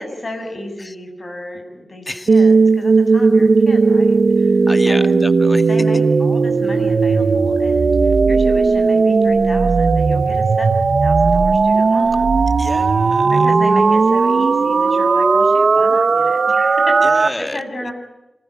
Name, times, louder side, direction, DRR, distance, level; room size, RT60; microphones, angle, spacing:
voice 1, 0.0-5.3 5.7-12.3 13.2-17.9, left 1 dB, 50° left, 5 dB, 7.4 m, -33 dB
voice 2, 2.1-2.4 4.7-5.7 12.6-13.5 17.0-17.9, left 1 dB, 20° left, 9 dB, 2.0 m, -30 dB
sound 1, 2.3-17.3, right 4 dB, 70° right, 1.2 m, -15 dB
27.0 x 20.0 x 9.0 m, 0.96 s
wide cardioid pair, 65°, 0 cm